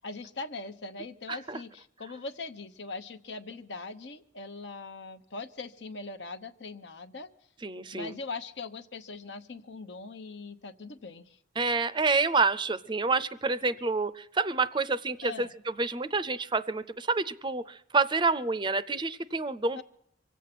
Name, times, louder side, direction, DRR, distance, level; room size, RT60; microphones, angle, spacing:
voice 1, 0.0-7.3 7.9-11.4 15.2-15.5 19.8-19.9, left 3 dB, 70° left, 10 dB, 1.0 m, -41 dB
voice 2, 1.3-1.6 7.6-8.1 11.6-15.5 15.8-19.8, right 4 dB, 25° right, 14 dB, 0.5 m, -28 dB
24.5 x 8.3 x 6.0 m, 0.74 s
head